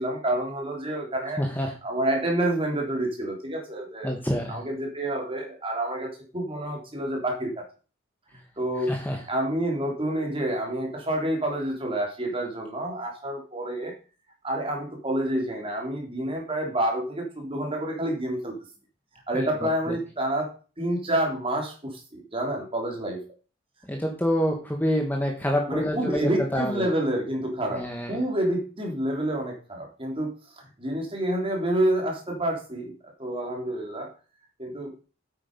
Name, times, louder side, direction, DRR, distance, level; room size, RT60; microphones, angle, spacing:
voice 1, 0.0-1.4 1.8-4.1 4.5-7.6 8.6-8.9 9.3-13.9 14.4-18.6 19.3-23.2 25.7-32.9 33.2-34.1 34.6-34.9, right 1 dB, 25° right, 1 dB, 3.3 m, -28 dB
voice 2, 1.4-1.7 4.0-4.6 8.9-9.2 19.3-19.5 19.9-20.0 23.9-26.9 27.7-28.2, equal, 10° left, 2 dB, 1.4 m, -27 dB
8.8 x 8.6 x 5.3 m, 0.36 s
head